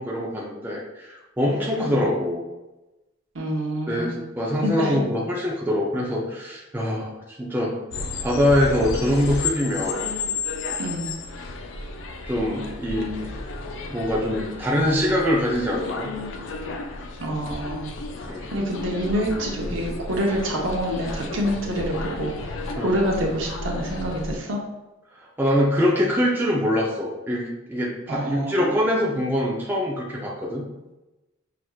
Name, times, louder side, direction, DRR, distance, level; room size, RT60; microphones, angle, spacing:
voice 1, 0.0-2.4 3.9-7.8 8.2-10.0 12.2-13.2 13.9-16.1 18.3-18.5 22.8-22.9 25.2-30.6, left 1 dB, 10° right, -3 dB, 0.4 m, -24 dB
voice 2, 3.3-4.2 4.6-5.0 10.8-11.1 17.2-17.9 18.5-22.5 22.8-24.6 28.1-28.7, equal, 65° right, 0 dB, 0.8 m, -27 dB
sound 1, 7.9-24.4, left 3 dB, 65° left, 0.4 m, -33 dB
5.8 x 2.5 x 2.3 m, 1.0 s
head